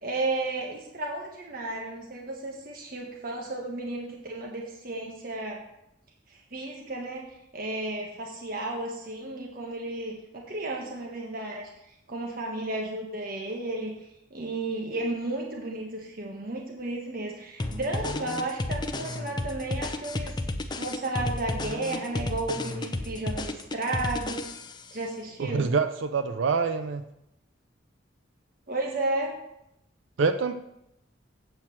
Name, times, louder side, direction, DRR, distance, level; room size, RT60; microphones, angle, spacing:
voice 1, 0.0-5.6 6.3-7.3 7.5-11.7 12.1-13.9 14.3-20.4 20.7-24.4 24.9-25.7 28.7-29.3, right 2 dB, 50° right, 0 dB, 1.2 m, -33 dB
sound 1, 17.6-24.9, left 2 dB, 25° left, 0.5 m, -32 dB
voice 2, 25.4-27.0 30.2-30.5, right 5 dB, 90° right, 9 dB, 0.5 m, -25 dB
8.1 x 4.4 x 7.2 m, 0.83 s
head